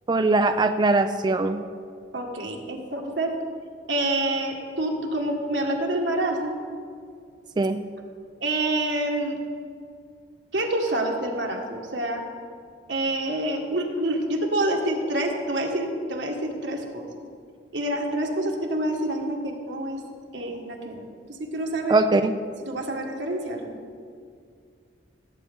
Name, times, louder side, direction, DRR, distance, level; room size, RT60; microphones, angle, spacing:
voice 1, 0.1-1.6 7.6-7.8 21.9-22.3, right 3 dB, 25° right, 8 dB, 0.3 m, -21 dB
voice 2, 2.1-3.4 3.9-6.6 8.4-9.4 10.5-12.2 12.9-17.1 17.7-20.0 20.3-21.0 21.3-22.0 22.6-23.8, right 1 dB, 90° right, 1 dB, 1.7 m, -27 dB
17.5 x 8.4 x 3.6 m, 2.3 s
head